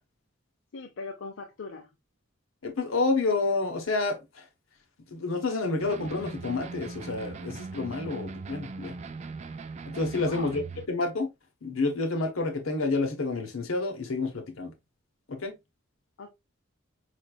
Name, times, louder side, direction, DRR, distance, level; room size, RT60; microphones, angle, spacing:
voice 1, 0.7-1.9 10.1-10.5 16.2-16.3, left 4 dB, 70° left, 0.5 m, -40 dB
voice 2, 2.6-4.2 5.1-8.9 9.9-10.6 10.9-11.3 11.6-14.7 15.3-15.6, left 3 dB, 85° left, 0.9 m, -29 dB
sound 1, 5.8-10.9, right 3 dB, 35° right, 0.3 m, -40 dB
5.0 x 3.2 x 2.2 m
head